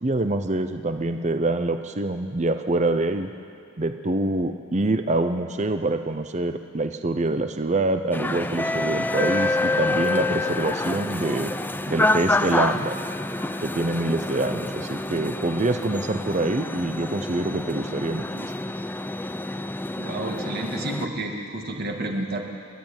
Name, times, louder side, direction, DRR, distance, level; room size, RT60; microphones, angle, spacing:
voice 1, 0.0-3.3 3.8-11.5 11.9-13.0 13.6-18.5, right 2 dB, 35° right, 8 dB, 0.8 m, -25 dB
sound 1, 8.1-21.1, left 2 dB, 10° left, 0.6 m, -27 dB
voice 2, 20.0-22.4, right 1 dB, 50° right, 1 dB, 2.4 m, -30 dB
30.0 x 12.0 x 9.0 m, 2.4 s
head